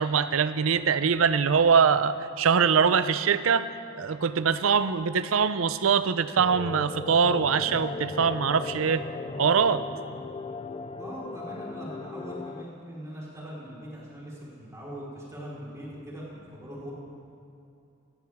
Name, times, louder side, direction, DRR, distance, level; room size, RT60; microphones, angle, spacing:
voice 1, 0.0-3.7 3.9-9.0 9.4-9.8, right 6 dB, 80° right, 14 dB, 0.5 m, -23 dB
sound 1, 6.4-12.6, left 3 dB, 25° left, 0.4 m, -37 dB
voice 2, 11.0-16.9, equal, 15° right, -6 dB, 4.2 m, -41 dB
17.5 x 15.5 x 3.6 m, 2.6 s
head